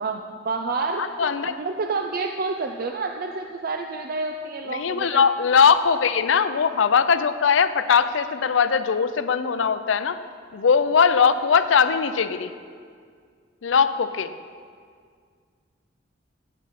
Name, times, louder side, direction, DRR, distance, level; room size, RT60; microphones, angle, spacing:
voice 1, 0.0-5.2, right 3 dB, 50° right, 4 dB, 0.5 m, -29 dB
voice 2, 1.0-1.5 4.7-10.2 10.5-12.5 13.6-14.3, left 6 dB, 70° left, 12 dB, 0.5 m, -20 dB
15.5 x 8.4 x 4.2 m, 2.1 s
head